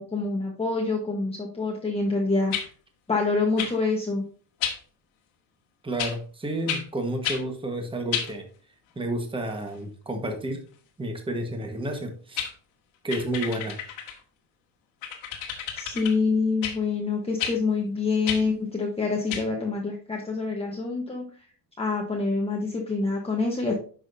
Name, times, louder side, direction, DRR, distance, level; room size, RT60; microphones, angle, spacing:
voice 1, 0.0-2.5 3.1-4.2 15.8-21.2 21.8-23.7, left 3 dB, 15° left, -1 dB, 1.1 m, -26 dB
sound 1, 2.5-2.7 3.6-3.7 4.6-4.8 6.0-6.2 6.7-6.8 7.2-7.4 8.1-8.3 11.9-12.0 12.4-12.5 13.1-14.2 15.0-16.1 16.6-16.8 17.4-17.6 18.3-18.4 19.3-19.4, left 8 dB, 85° left, 1.9 m, -31 dB
voice 2, 5.8-8.5 8.9-10.6 11.0-12.4 13.0-13.8, right 1 dB, 10° right, 4 dB, 1.3 m, -30 dB
10.5 x 6.0 x 2.7 m, 0.41 s
cardioid pair, 155°, 45 cm